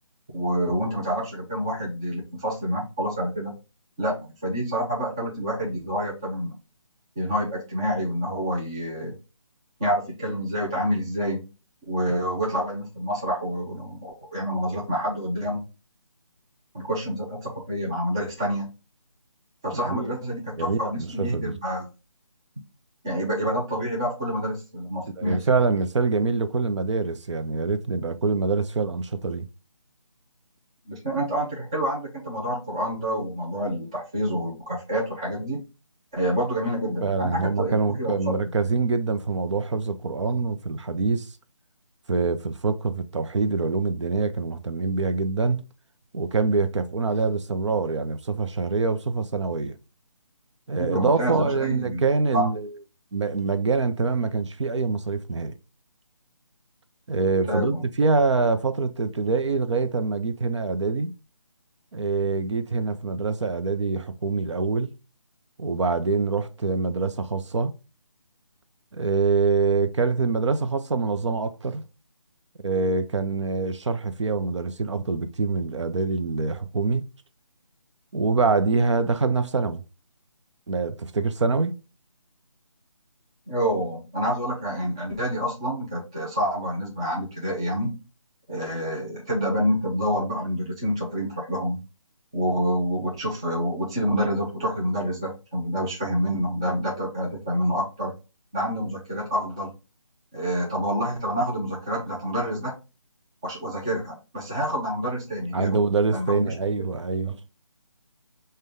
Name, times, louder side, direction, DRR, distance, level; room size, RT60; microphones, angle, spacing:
voice 1, 0.3-3.5 4.0-6.6 7.2-9.1 9.8-11.5 11.9-15.6 16.7-18.7 19.6-21.9 23.0-25.4 30.9-35.6 36.1-38.3 50.8-52.0 52.3-52.5 57.5-57.8 83.5-88.0 88.5-91.8 92.3-98.1 98.5-99.7 100.3-102.8 103.4-105.8 106.1-106.8, equal, 10° right, 0.4 m, -27 dB
voice 2, 19.7-20.1 20.6-21.6 25.2-29.5 37.0-41.3 42.1-45.6 46.1-49.7 50.7-52.7 53.1-55.5 57.1-61.1 61.9-64.9 65.6-67.7 68.9-71.8 72.6-77.0 78.1-79.8 80.7-81.7 105.5-107.4, right 4 dB, 60° right, 0.5 m, -25 dB
5.1 x 2.2 x 3.4 m
figure-of-eight pair, 160°, 17 cm